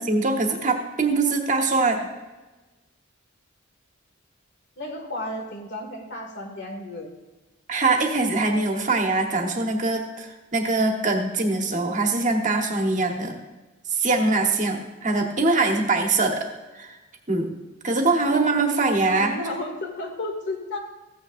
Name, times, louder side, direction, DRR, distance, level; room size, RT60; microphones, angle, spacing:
voice 1, 0.0-2.1 7.7-13.4 13.9-16.5 16.8-17.0 17.3-17.5 17.8-19.4, right 3 dB, 40° right, 3 dB, 1.3 m, -23 dB
voice 2, 4.8-7.1 19.1-20.8, left 1 dB, 55° left, 2 dB, 2.1 m, -33 dB
14.5 x 8.9 x 2.6 m, 1.1 s
head